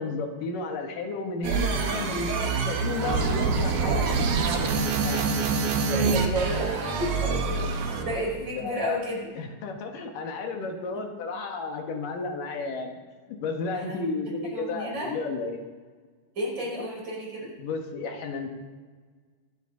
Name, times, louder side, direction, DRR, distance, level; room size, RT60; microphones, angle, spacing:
voice 1, 0.0-4.3 5.0-5.3 7.6-7.8 8.4-8.9 9.4-13.0 13.3-15.6 16.7-16.8 17.6-18.5, left 3 dB, 70° left, 3 dB, 3.0 m, -33 dB
sound 1, 1.4-8.2, right 4 dB, 85° right, 3.2 m, -26 dB
voice 2, 5.9-9.3 13.8-14.1 14.5-15.1 16.4-17.5, equal, 30° right, -4 dB, 5.5 m, -32 dB
23.5 x 9.5 x 3.9 m, 1.5 s
omnidirectional pair, 4.1 m